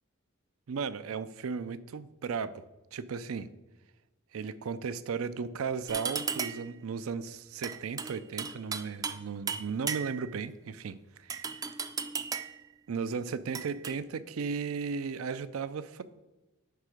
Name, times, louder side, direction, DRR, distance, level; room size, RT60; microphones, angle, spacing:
voice 1, 0.7-2.6 2.9-3.5 4.3-11.4 12.9-16.0, right 5 dB, 90° right, 15 dB, 0.5 m, -35 dB
sound 1, 5.9-6.7 7.6-9.2 9.5-10.3 11.3-12.6 13.5-13.9, right 6 dB, 15° right, 0.3 m, -35 dB
9.6 x 3.8 x 4.9 m, 1.1 s
head